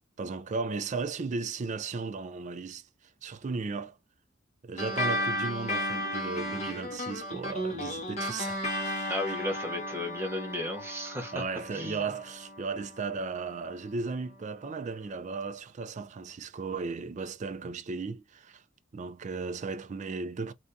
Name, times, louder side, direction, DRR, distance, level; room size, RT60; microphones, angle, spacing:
voice 1, 0.2-2.9 3.2-4.0 4.6-9.4 11.3-18.6 18.9-20.5, right 4 dB, 35° right, 0.4 m, -35 dB
sound 1, 4.8-13.6, left 1 dB, 35° left, 1.3 m, -34 dB
voice 2, 9.1-11.4 11.7-12.0, left 1 dB, 10° right, 0.8 m, -34 dB
3.3 x 2.6 x 2.6 m
head